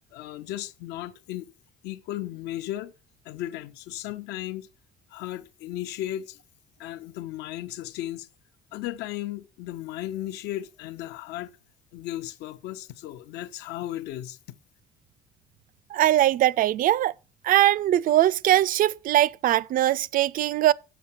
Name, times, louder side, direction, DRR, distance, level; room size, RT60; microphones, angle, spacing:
voice 1, 0.1-1.5 1.8-2.9 3.2-4.7 5.1-6.4 6.8-8.3 8.7-11.5 11.9-14.4, left 14 dB, 90° left, 0.8 m, -35 dB
voice 2, 15.9-17.1 17.4-20.7, right 13 dB, 55° right, 0.4 m, -21 dB
7.1 x 5.4 x 7.2 m
cardioid pair, 110°, 17 cm